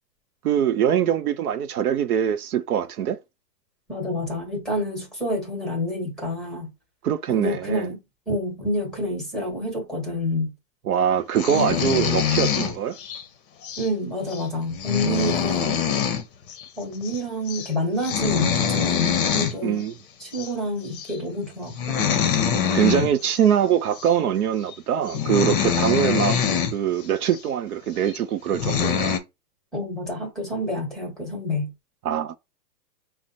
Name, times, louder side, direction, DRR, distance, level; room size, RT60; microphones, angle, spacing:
voice 1, 0.4-3.2 7.0-7.9 10.9-13.0 19.6-20.0 22.7-26.4 26.7-29.2 32.0-32.3, right 9 dB, 60° right, 0.6 m, -23 dB
voice 2, 3.9-6.7 7.3-8.0 8.3-10.5 11.5-12.0 13.8-15.9 16.8-19.9 20.2-22.1 29.7-31.7, left 1 dB, ahead, 1.1 m, -28 dB
sound 1, 11.4-13.2 13.6-13.9 14.3-14.4 14.7-16.2 16.5-16.6 16.9-17.2 17.5-17.7 18.0-19.5 20.3-20.5 21.0-21.2 21.7-23.4 24.0-24.1 24.7-24.8 25.1-26.7 27.3-27.4 28.1-28.2 28.5-29.2, left 8 dB, 35° left, 0.7 m, -24 dB
4.8 x 2.1 x 4.2 m
hypercardioid pair, 150°, 50 cm